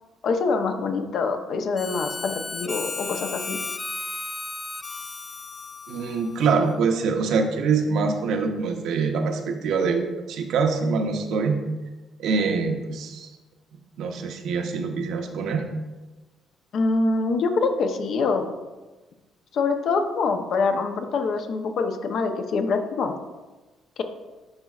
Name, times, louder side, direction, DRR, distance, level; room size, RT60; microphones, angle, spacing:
voice 1, 0.2-3.6 16.7-18.6 19.5-23.1, left 4 dB, 65° left, 6 dB, 0.7 m, -25 dB
Harmonica, 1.8-6.9, left 3 dB, 25° left, 0.4 m, -34 dB
voice 2, 5.9-11.6 12.2-13.3 14.0-15.7, right 5 dB, 75° right, 5 dB, 0.7 m, -24 dB
10.5 x 4.1 x 2.4 m, 1.2 s
cardioid pair, 90°, 0 cm